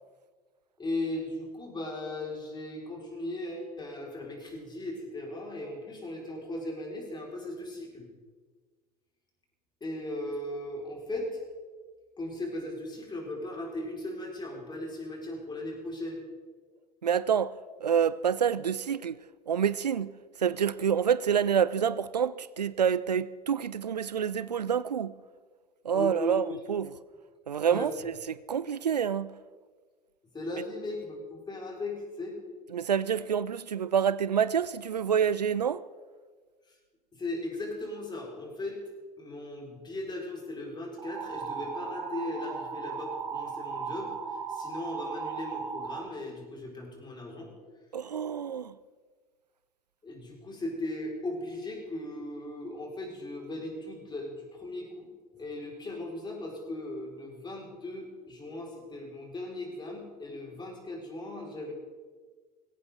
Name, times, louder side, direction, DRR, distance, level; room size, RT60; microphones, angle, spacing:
voice 1, 0.8-8.1 9.8-11.4 12.2-16.2 25.9-26.6 27.7-27.9 30.3-32.4 37.1-38.8 39.2-47.5 50.0-55.1 55.4-61.7, left 1 dB, 20° left, 5.5 m, -37 dB
voice 2, 17.0-17.5 17.8-19.2 19.5-20.1 20.4-25.1 25.8-26.9 27.5-29.4 32.7-35.8 47.9-48.7, right 8 dB, 85° right, 0.4 m, -27 dB
sound 1, 41.0-46.0, right 5 dB, 70° right, 3.4 m, -37 dB
19.0 x 17.0 x 4.0 m
figure-of-eight pair, 70°, 20 cm